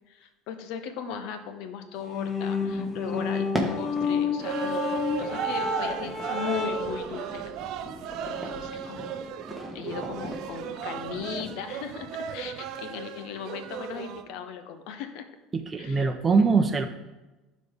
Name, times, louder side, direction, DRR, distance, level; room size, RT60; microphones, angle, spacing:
voice 1, 0.1-4.8 5.2-7.5 8.2-9.1 9.7-15.3 15.8-16.1, left 7 dB, 70° left, 8 dB, 0.9 m, -37 dB
sound 1, 2.0-7.1, left 5 dB, 30° left, 1.0 m, -30 dB
sound 2, 2.6-11.5, equal, 5° left, 1.7 m, -39 dB
sound 3, 4.4-14.2, right 8 dB, 65° right, 0.5 m, -35 dB
voice 2, 15.5-16.9, right 4 dB, 25° right, 6 dB, 0.7 m, -22 dB
11.5 x 4.2 x 3.6 m, 1.1 s
supercardioid pair, 85°, 0 cm